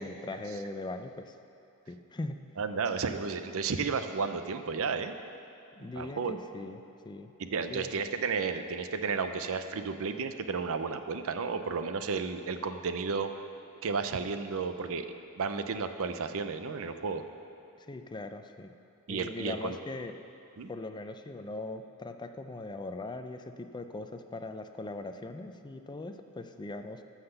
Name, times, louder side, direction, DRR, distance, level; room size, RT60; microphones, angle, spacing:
voice 1, 0.0-1.3 1.9-2.4 5.7-7.3 7.7-7.9 17.8-18.7 19.1-20.1 20.7-27.0, left 2 dB, 20° left, 8 dB, 0.4 m, -40 dB
voice 2, 2.6-5.2 5.9-6.4 7.4-13.3 13.8-15.1 15.4-17.2 19.1-19.8 20.6-20.7, right 5 dB, 65° right, 9 dB, 0.6 m, -32 dB
13.5 x 5.8 x 6.7 m, 2.8 s
head